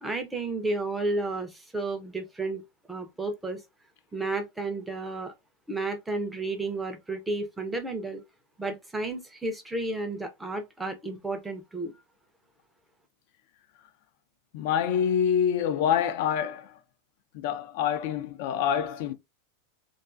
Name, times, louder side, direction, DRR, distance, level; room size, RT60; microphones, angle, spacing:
voice 1, 0.0-2.6 2.9-3.6 4.1-5.3 5.7-8.2 8.6-11.9, right 2 dB, 5° right, 0.5 m, -32 dB
voice 2, 14.5-16.8 17.3-19.1, left 8 dB, 55° left, 0.4 m, -26 dB
2.3 x 2.3 x 2.5 m
supercardioid pair, 160°, 0 cm